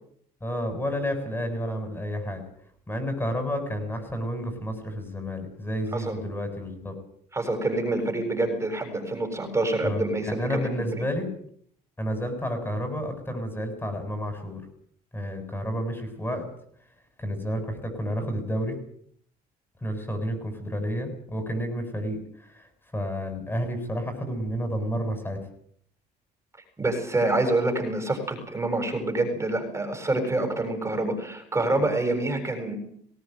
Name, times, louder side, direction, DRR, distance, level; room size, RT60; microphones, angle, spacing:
voice 1, 0.4-2.4 2.9-6.9 9.8-11.3 12.0-14.6 15.1-16.4 17.2-18.8 19.8-22.7 22.9-25.4, equal, 10° left, 7 dB, 7.3 m, -30 dB
voice 2, 7.3-11.0 26.8-32.8, right 2 dB, 15° right, 5 dB, 7.5 m, -27 dB
21.0 x 17.5 x 9.3 m, 0.64 s
cardioid pair, 110°, 17 cm